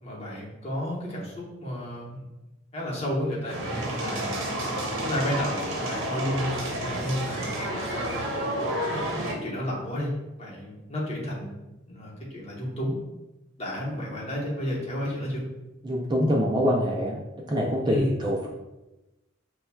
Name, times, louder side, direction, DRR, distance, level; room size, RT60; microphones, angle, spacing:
voice 1, 0.0-2.2 2.7-3.6 3.9-4.4 5.0-8.2 8.8-10.1 10.4-12.9 13.6-15.4 17.8-18.1, equal, 30° left, -5 dB, 0.9 m, -32 dB
sound 1, 3.4-9.3, right 1 dB, 75° right, 0.8 m, -30 dB
voice 2, 15.8-17.2 17.5-18.5, equal, 20° right, -2 dB, 0.3 m, -25 dB
5.6 x 2.2 x 2.2 m, 0.99 s
head